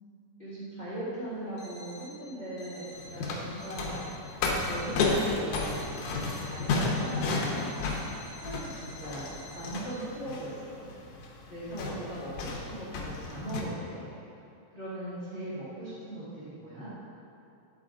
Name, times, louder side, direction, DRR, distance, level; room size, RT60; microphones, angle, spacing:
voice 1, 0.4-4.0 4.6-5.8 6.4-7.8 8.4-10.9 11.5-14.1 14.7-16.9, right 1 dB, 35° left, -12 dB, 0.7 m, -39 dB
Alarm, 1.6-2.2 2.6-3.2 3.6-4.2 4.6-5.2 5.6-9.7, left 1 dB, 60° left, 1.6 m, -49 dB
sound 1, 2.9-13.6, left 3 dB, 75° left, 2.1 m, -32 dB
11.0 x 4.2 x 3.7 m, 2.7 s
omnidirectional pair, 4.2 m